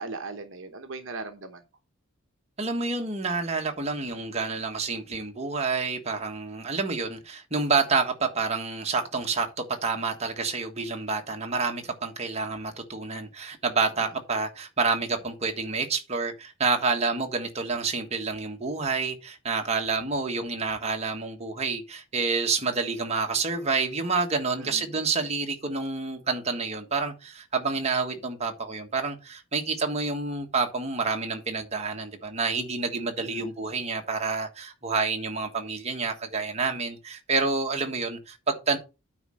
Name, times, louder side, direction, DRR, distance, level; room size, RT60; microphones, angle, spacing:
voice 1, 0.0-1.6 24.6-24.9 33.2-33.5, right 3 dB, 60° right, 1.0 m, -38 dB
voice 2, 2.6-38.8, right 4 dB, 30° right, 1.4 m, -28 dB
9.3 x 4.3 x 6.3 m
head